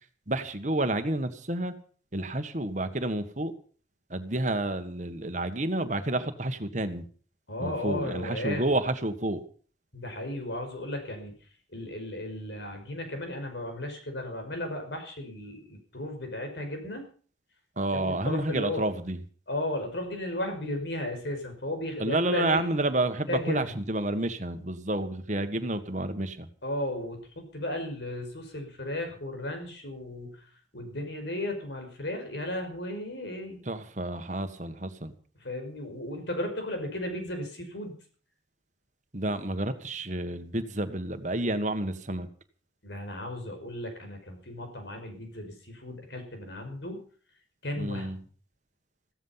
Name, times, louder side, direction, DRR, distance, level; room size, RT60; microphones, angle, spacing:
voice 1, 0.3-1.7 2.1-3.5 4.1-7.0 7.6-9.4 17.8-19.2 22.0-26.5 33.7-35.1 39.1-42.3 47.8-48.2, right 1 dB, 40° right, 9 dB, 1.6 m, -30 dB
voice 2, 7.5-8.7 9.9-11.4 11.7-17.0 17.9-18.8 19.5-22.6 23.3-23.7 26.6-30.4 30.7-33.6 35.4-38.0 42.8-47.0 47.6-48.3, left 1 dB, 70° left, 5 dB, 5.4 m, -35 dB
15.5 x 14.0 x 5.8 m, 0.43 s
head